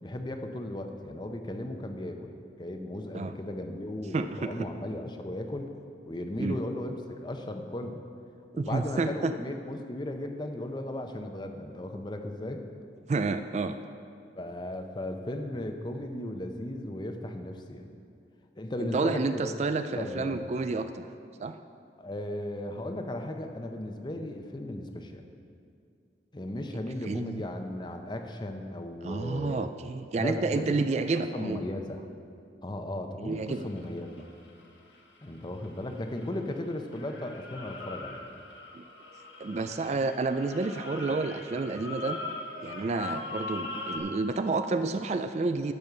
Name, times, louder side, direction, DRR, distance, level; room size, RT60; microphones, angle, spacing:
voice 1, 0.0-5.7 6.1-8.0 8.5-12.6 14.4-17.9 18.6-20.5 22.0-25.2 26.3-29.7 30.2-32.0 32.6-34.3 35.2-38.2, left 1 dB, 25° left, 5 dB, 0.7 m, -36 dB
voice 2, 4.1-4.7 6.4-6.6 8.6-9.3 13.1-13.7 18.9-21.1 21.4-21.6 27.0-27.4 29.0-31.6 33.2-33.7 38.7-38.8 39.4-42.2 42.6-45.7, right 3 dB, 40° right, 9 dB, 0.3 m, -30 dB
sound 1, 33.5-36.6 36.9-44.0, left 2 dB, 90° left, 1.5 m, -41 dB
12.0 x 5.5 x 6.6 m, 2.4 s
head